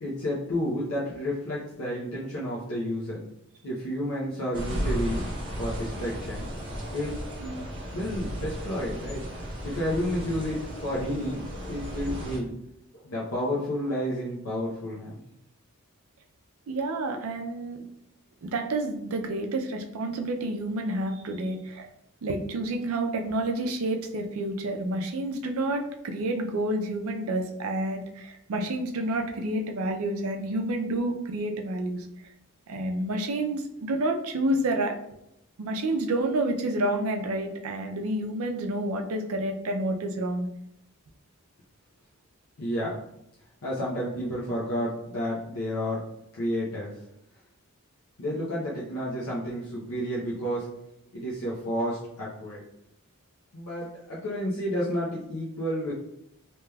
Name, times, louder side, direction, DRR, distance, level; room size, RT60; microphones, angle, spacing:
voice 1, 0.0-3.2 3.6-5.3 5.6-6.5 6.9-7.2 7.9-11.4 11.7-12.6 12.9-15.2 42.6-42.9 43.6-46.0 46.3-46.9 48.2-50.7 51.1-52.6 53.5-55.9, equal, 80° left, -7 dB, 0.7 m, -31 dB
sound 1, 4.5-12.4, equal, 25° right, 0.7 m, -35 dB
voice 2, 16.7-17.8 18.4-21.9 22.2-32.1 32.7-34.9 35.6-40.5, right 1 dB, 75° right, 4 dB, 0.5 m, -29 dB
3.3 x 2.9 x 2.3 m, 0.81 s
head